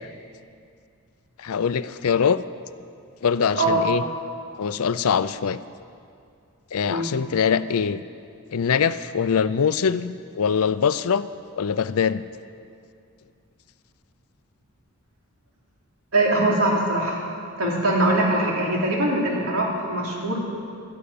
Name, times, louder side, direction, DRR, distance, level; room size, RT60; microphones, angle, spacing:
voice 1, 1.4-2.4 3.2-4.0 4.6-5.6 6.7-8.0 8.5-11.3 11.5-12.2, left 6 dB, 70° left, 14 dB, 0.5 m, -23 dB
voice 2, 3.6-3.9 6.9-7.1 16.1-17.3 17.6-20.4, right 1 dB, 65° right, -3 dB, 3.4 m, -22 dB
13.0 x 11.5 x 8.6 m, 2.3 s
head